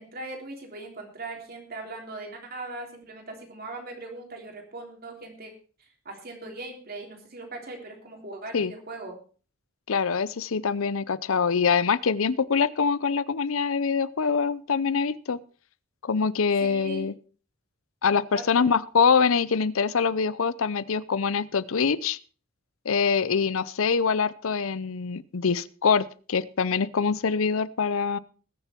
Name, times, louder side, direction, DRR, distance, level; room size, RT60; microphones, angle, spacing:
voice 1, 0.0-5.5 6.0-9.2 16.6-17.1 18.3-18.7, right 2 dB, 45° right, 2 dB, 3.2 m, -39 dB
voice 2, 9.9-15.4 16.0-17.1 18.0-22.2 22.9-28.2, left 5 dB, 80° left, 19 dB, 0.6 m, -24 dB
20.5 x 6.9 x 4.4 m, 0.40 s
head